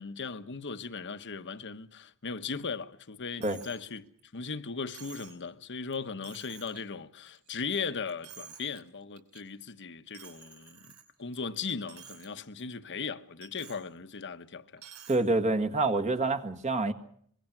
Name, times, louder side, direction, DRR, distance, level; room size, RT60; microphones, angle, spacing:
voice 1, 0.0-4.0 4.3-10.8 11.2-14.8, left 5 dB, 55° left, 1.2 m, -38 dB
Coin (dropping), 3.4-3.8 4.2-4.3 4.9-5.4 5.9-6.0 6.2-6.8 7.3-7.8 8.1-8.8 9.2-9.4 10.1-11.3 11.7-12.3 12.6-12.7 13.4-13.8 14.8-15.2, right 7 dB, 85° right, 5.3 m, -50 dB
voice 2, 15.1-16.9, right 2 dB, 30° right, 1.7 m, -27 dB
25.0 x 22.0 x 6.0 m
head